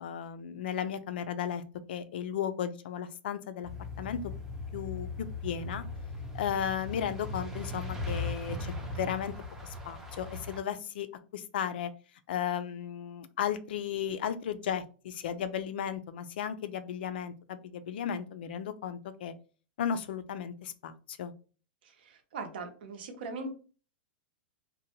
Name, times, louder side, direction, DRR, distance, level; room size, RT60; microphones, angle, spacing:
voice 1, 0.0-1.6 1.9-3.7 4.0-4.2 4.7-5.8 6.3-9.3 9.9-11.1 11.3-11.9 12.3-19.3 19.8-21.3, left 8 dB, 70° left, 12 dB, 0.4 m, -35 dB
sound 1, 3.6-10.6, left 2 dB, 5° right, 0.4 m, -38 dB
voice 2, 22.3-23.5, right 3 dB, 70° right, 6 dB, 0.7 m, -39 dB
2.7 x 2.1 x 2.8 m, 0.37 s
supercardioid pair, 160°, 6 cm